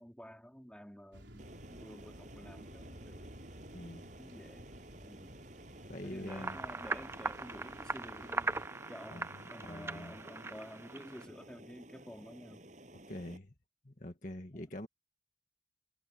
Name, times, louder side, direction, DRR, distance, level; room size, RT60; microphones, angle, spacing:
voice 1, 0.0-1.5 1.8-3.3 4.2-4.8 5.0-5.4 6.0-8.6 8.9-12.6 14.5-14.7, equal, 5° left, 3.7 m, -51 dB
sound 1, 1.1-8.7, right 1 dB, 80° right, 3.6 m, -54 dB
sound 2, 1.4-13.4, right 1 dB, 40° right, 7.8 m, -54 dB
voice 2, 3.7-4.1 5.9-6.6 9.1-9.3 9.6-10.1 13.1-13.5 13.8-14.9, left 1 dB, 45° left, 1.9 m, -44 dB
sound 3, 6.3-11.2, right 3 dB, 15° right, 0.4 m, -40 dB
head